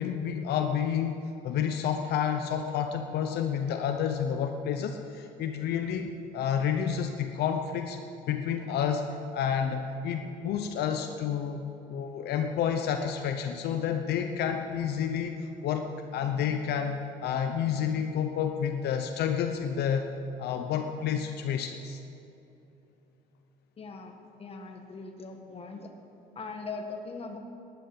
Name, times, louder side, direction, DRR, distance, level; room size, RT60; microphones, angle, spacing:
voice 1, 0.0-8.0 8.3-11.6 11.9-20.1 20.4-22.0, left 8 dB, 75° left, 6 dB, 0.8 m, -30 dB
voice 2, 23.8-24.1 24.4-25.9 26.3-27.4, left 4 dB, 35° left, 4 dB, 1.7 m, -40 dB
11.5 x 9.6 x 8.7 m, 2.9 s
cardioid pair, 110°, 17 cm